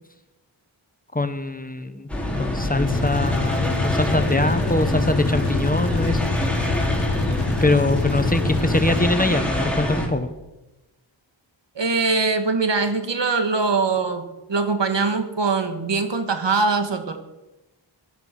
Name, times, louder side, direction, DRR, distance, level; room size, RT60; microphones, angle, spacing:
voice 1, 1.1-2.1 2.4-6.3 7.6-10.3, left 2 dB, 20° left, 9 dB, 1.3 m, -23 dB
sound 1, 2.1-10.1, left 1 dB, 5° left, 3.6 m, -26 dB
sound 2, 2.8-9.4, left 3 dB, 65° left, 1.7 m, -26 dB
voice 2, 11.8-17.2, right 4 dB, 70° right, 7 dB, 1.8 m, -22 dB
17.0 x 11.5 x 6.1 m, 1.0 s
wide cardioid pair, 70°, 45 cm